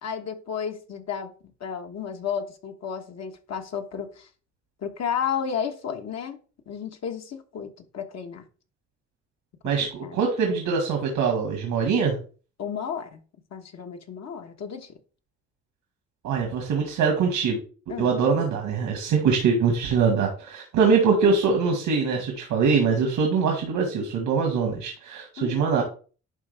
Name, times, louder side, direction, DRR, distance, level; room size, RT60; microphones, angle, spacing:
voice 1, 0.0-1.3 1.6-4.3 4.8-6.4 6.7-8.4 10.0-10.2 12.6-13.2 13.5-14.9 17.9-18.1 25.4-25.8, left 7 dB, 60° left, 5 dB, 1.4 m, -32 dB
voice 2, 9.6-12.2 16.2-17.6 18.0-25.8, right 5 dB, 85° right, 2 dB, 1.9 m, -23 dB
11.0 x 3.7 x 3.5 m, 0.37 s
cardioid pair, 85°, 30 cm